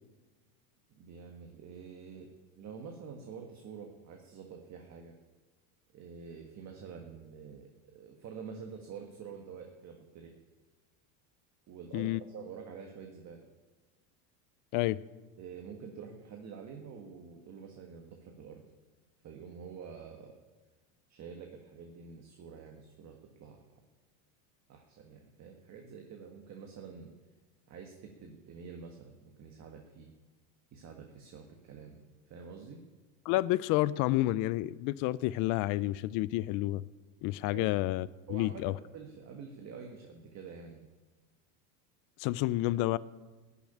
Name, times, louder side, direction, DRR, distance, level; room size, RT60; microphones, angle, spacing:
voice 1, 1.0-5.1 5.9-10.3 11.7-13.5 15.4-18.6 19.2-20.3 21.1-23.6 24.7-27.1 27.7-30.1 30.7-32.0 32.3-32.8 37.5-37.7 38.3-40.8, right 6 dB, 35° right, 3 dB, 1.6 m, -47 dB
voice 2, 33.3-36.8 37.2-38.8 42.2-43.0, left 17 dB, 45° left, 20 dB, 0.5 m, -30 dB
14.5 x 7.0 x 10.0 m, 1.3 s
supercardioid pair, 120°, 46 cm